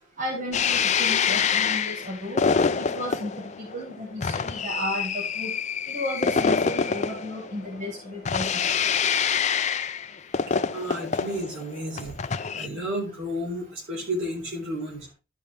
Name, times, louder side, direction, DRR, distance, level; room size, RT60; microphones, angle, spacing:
voice 1, 0.2-2.4 2.8-5.5 5.9-8.7, left 1 dB, 35° right, -2 dB, 1.9 m, -34 dB
sound 1, 0.5-12.7, left 6 dB, 35° left, 0.4 m, -26 dB
voice 2, 10.7-15.1, equal, 65° right, -1 dB, 4.2 m, -32 dB
12.0 x 5.4 x 3.4 m, 0.28 s
head